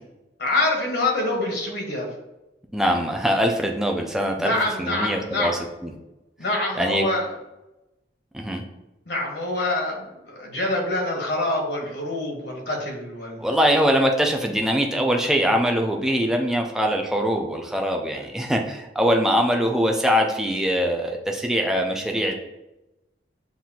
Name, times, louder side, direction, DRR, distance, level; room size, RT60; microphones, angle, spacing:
voice 1, 0.4-2.1 4.4-5.5 6.4-7.3 9.1-13.4, left 2 dB, 65° left, 1 dB, 1.2 m, -26 dB
voice 2, 2.7-4.5 4.8-5.9 6.7-7.1 8.3-8.6 13.4-22.3, equal, 5° right, 2 dB, 0.4 m, -22 dB
7.4 x 2.5 x 2.8 m, 0.97 s
head